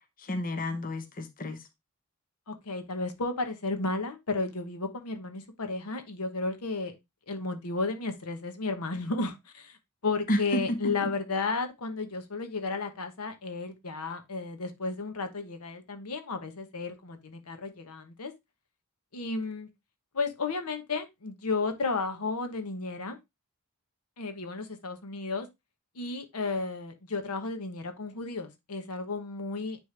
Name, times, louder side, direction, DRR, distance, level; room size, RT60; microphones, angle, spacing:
voice 1, 0.2-1.6 10.3-11.1, equal, 40° left, 0.8 m, -31 dB
voice 2, 2.5-7.0 7.3-9.8 10.0-18.3 19.1-19.7 20.1-23.2 24.2-25.5 25.9-29.8, left 3 dB, 90° left, 1.1 m, -33 dB
9.6 x 3.4 x 3.2 m
head